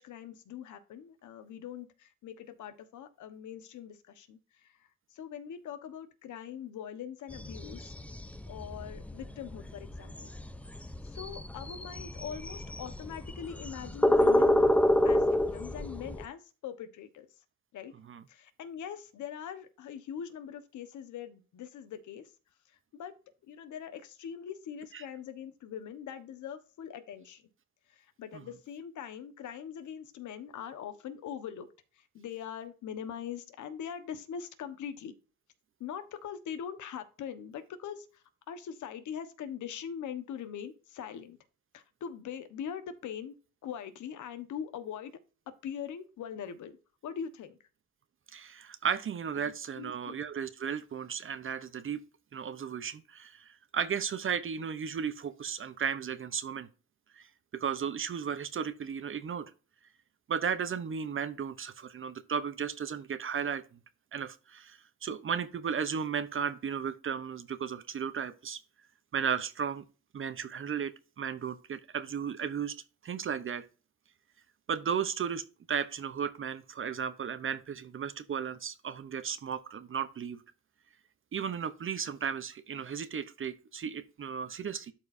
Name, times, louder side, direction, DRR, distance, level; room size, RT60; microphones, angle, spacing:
voice 1, 0.0-4.7 5.1-7.9 8.5-10.3 11.1-14.7 15.0-17.3 17.7-17.9 18.3-22.3 22.9-23.1 23.5-27.4 28.2-31.7 32.1-35.1 35.8-38.1 38.5-41.4 41.7-43.3 43.6-45.1 45.6-46.7 47.0-47.6 49.8-50.2, left 8 dB, 75° left, 1.3 m, -42 dB
sound 1, 7.3-16.2, left 1 dB, 5° left, 0.7 m, -28 dB
voice 2, 48.3-52.0 52.3-56.7 57.1-57.3 57.5-59.5 60.3-63.6 64.1-68.6 69.1-69.8 70.1-70.9 71.2-72.8 73.0-73.7 74.7-80.4 81.3-84.9, right 7 dB, 45° right, 0.8 m, -35 dB
12.0 x 4.6 x 2.7 m
cardioid pair, 90°, 30 cm